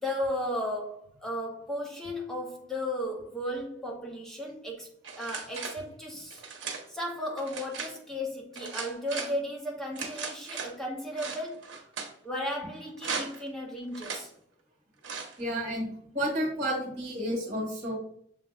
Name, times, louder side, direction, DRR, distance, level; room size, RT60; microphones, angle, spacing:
voice 1, 0.0-4.9 5.2-6.4 6.9-11.7 12.2-14.3, left 1 dB, 5° left, -2 dB, 0.7 m, -35 dB
sound 1, 5.0-5.8 6.3-6.8 7.4-7.9 8.5-9.3 9.9-10.7 11.2-12.1 13.0-13.5 13.9-14.2 15.0-15.4, right 5 dB, 90° right, 0.8 m, -37 dB
voice 2, 15.4-15.9 16.1-18.0, equal, 40° right, -1 dB, 1.7 m, -31 dB
6.9 x 2.9 x 2.4 m, 0.67 s
head